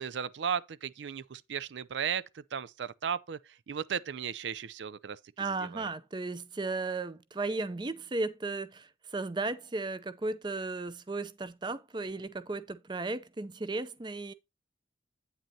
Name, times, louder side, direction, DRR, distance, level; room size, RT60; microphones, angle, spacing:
voice 1, 0.0-5.9, right 7 dB, 75° right, 0.4 m, -36 dB
voice 2, 5.4-14.3, right 3 dB, 25° right, 0.5 m, -35 dB
8.8 x 7.9 x 2.8 m
head